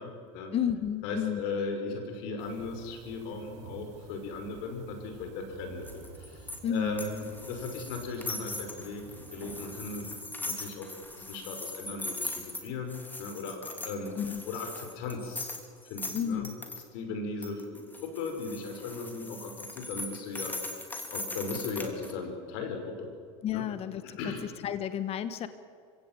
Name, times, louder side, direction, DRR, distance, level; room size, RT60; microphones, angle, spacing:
voice 1, 0.0-0.5 1.0-10.1 10.4-14.2 14.5-15.5 15.8-16.5 16.9-20.8 21.1-23.1 23.5-23.7 24.0-24.4, left 3 dB, 70° left, 5 dB, 5.7 m, -37 dB
voice 2, 0.5-1.4 6.6-7.0 14.2-14.4 16.1-16.6 23.4-24.2 24.6-25.5, left 9 dB, 40° left, 12 dB, 1.3 m, -31 dB
sound 1, 2.4-10.2, right 5 dB, 80° right, 4.1 m, -50 dB
sound 2, 5.8-16.8 17.4-22.1, left 2 dB, 10° left, 3.1 m, -40 dB
26.5 x 16.5 x 9.1 m, 2.2 s
supercardioid pair, 115°, 16 cm